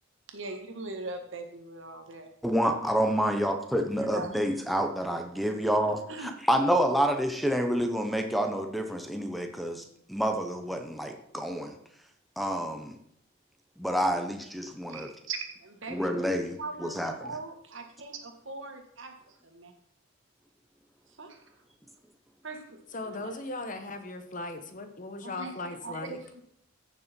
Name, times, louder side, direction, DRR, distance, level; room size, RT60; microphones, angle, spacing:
voice 1, 0.3-2.3 4.0-4.4 6.1-6.3 14.9-16.1 16.6-19.7 21.2-21.4 22.4-23.4 25.2-25.5 25.8-26.4, right 3 dB, 65° right, 5 dB, 1.8 m, -40 dB
voice 2, 2.4-9.8 10.1-11.7 12.4-12.9 13.8-15.1 15.9-17.1, equal, ahead, 5 dB, 0.9 m, -28 dB
voice 3, 22.9-26.2, left 2 dB, 40° left, 8 dB, 1.1 m, -38 dB
15.0 x 6.8 x 4.5 m, 0.70 s
head